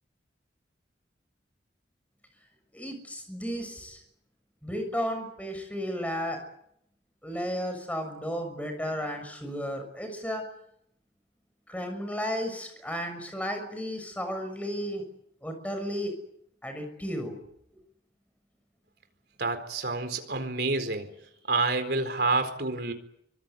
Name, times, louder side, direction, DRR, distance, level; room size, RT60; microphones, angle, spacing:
voice 1, 2.7-4.0 4.6-6.4 7.2-10.4 11.7-15.0 15.4-16.1 16.6-17.4, equal, 10° left, 6 dB, 6.5 m, -33 dB
voice 2, 19.4-21.1 21.5-22.9, right 3 dB, 60° right, 7 dB, 4.3 m, -28 dB
24.5 x 24.5 x 8.2 m, 0.73 s
head